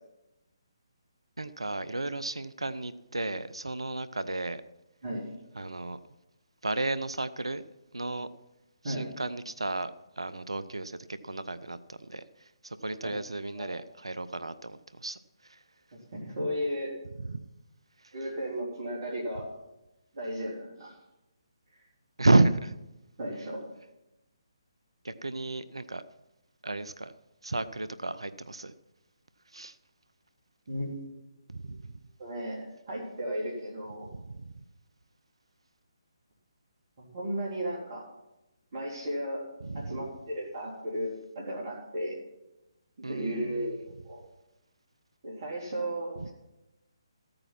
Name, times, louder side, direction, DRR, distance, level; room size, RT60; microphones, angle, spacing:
voice 1, 1.4-4.6 5.6-6.0 6.6-7.6 7.9-8.3 8.9-12.2 12.6-15.2 15.4-15.6 17.2-17.4 22.2-22.7 25.0-26.0 26.6-27.1 27.4-28.7 29.5-29.7 31.5-31.9 34.0-34.5 39.6-40.0 43.0-43.7 46.2-46.3, right 2 dB, 70° right, 15 dB, 0.6 m, -32 dB
voice 2, 5.0-5.3 8.8-9.1 13.5-13.8 16.1-16.9 18.1-19.5 20.1-21.0 23.2-23.7 30.7-31.1 31.6-31.7 32.2-34.1 37.0-38.1 38.7-39.4 39.7-42.2 43.1-44.2 45.2-46.3, equal, 45° right, -4 dB, 3.5 m, -35 dB
14.5 x 8.9 x 6.0 m, 0.97 s
figure-of-eight pair, 140°, 3 cm